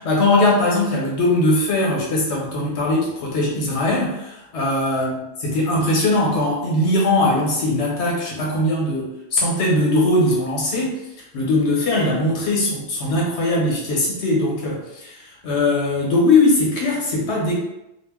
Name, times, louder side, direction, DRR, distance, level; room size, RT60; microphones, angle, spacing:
voice 1, 0.0-10.9 11.3-17.6, left 2 dB, 80° left, -3 dB, 1.1 m, -20 dB
2.4 x 2.1 x 3.4 m, 0.88 s
omnidirectional pair, 1.1 m